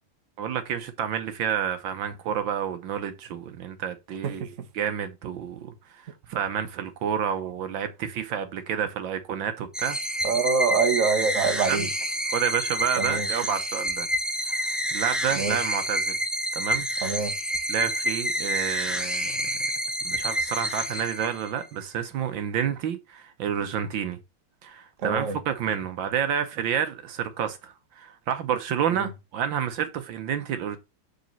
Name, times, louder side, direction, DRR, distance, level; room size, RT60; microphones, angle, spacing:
voice 1, 0.4-10.0 11.7-11.9 12.3-14.1 14.4-16.2 16.5-16.9 17.7-19.4 20.0-24.2 24.6-30.8, right 8 dB, 70° right, 1.5 m, -29 dB
sound 1, 9.7-21.6, equal, ahead, 0.4 m, -28 dB
voice 2, 10.2-11.9 13.0-13.3 15.3-15.6 17.0-17.3 25.0-25.3, right 5 dB, 50° right, 1.1 m, -24 dB
6.7 x 4.1 x 5.3 m
omnidirectional pair, 2.3 m